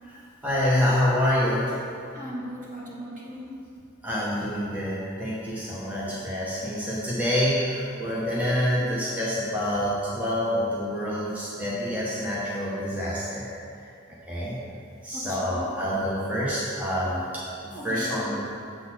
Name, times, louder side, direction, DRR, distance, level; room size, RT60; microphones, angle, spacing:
voice 1, 0.1-1.7 4.0-13.5 13.8-14.6 15.0-18.4, equal, 5° right, -8 dB, 1.0 m, -27 dB
voice 2, 2.1-3.6 8.7-9.0 15.1-15.7 17.7-18.4, equal, 40° right, -6 dB, 1.7 m, -38 dB
7.6 x 4.0 x 5.9 m, 2.5 s
head